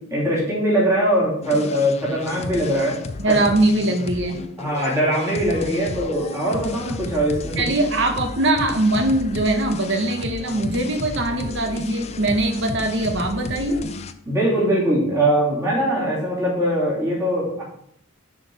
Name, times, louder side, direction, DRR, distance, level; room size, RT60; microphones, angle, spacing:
voice 1, 0.0-3.0 3.3-3.4 4.6-7.7 14.2-17.6, right 1 dB, 15° right, -6 dB, 3.0 m, -21 dB
sound 1, 1.4-14.1, left 3 dB, 30° left, 0.4 m, -33 dB
voice 2, 3.2-4.4 7.6-13.8, right 2 dB, 60° right, 5 dB, 1.1 m, -21 dB
6.3 x 4.8 x 5.6 m, 0.70 s
head